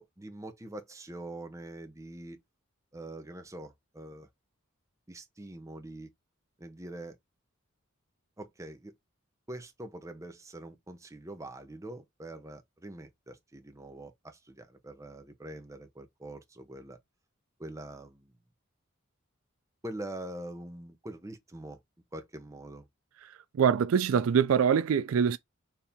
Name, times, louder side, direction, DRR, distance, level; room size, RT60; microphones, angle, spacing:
voice 1, 0.0-2.4 2.9-4.3 5.1-6.1 6.6-7.2 8.4-8.9 9.5-17.0 17.6-18.3 19.8-21.8 22.1-22.9, right 1 dB, 15° right, 0.7 m, -44 dB
voice 2, 23.5-25.4, right 7 dB, 75° right, 0.4 m, -24 dB
4.4 x 2.7 x 3.5 m
head